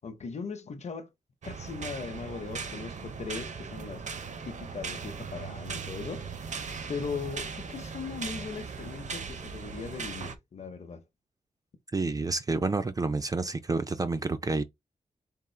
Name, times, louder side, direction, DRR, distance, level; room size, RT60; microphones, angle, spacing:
voice 1, 0.0-1.1 1.4-4.0 4.4-6.3 6.9-11.0, left 5 dB, 50° left, 0.7 m, -39 dB
sound 1, 1.4-10.3, right 5 dB, 55° right, 0.7 m, -39 dB
voice 2, 11.9-14.6, right 3 dB, 25° right, 0.4 m, -29 dB
3.6 x 2.4 x 4.3 m
wide cardioid pair, 140°, 15 cm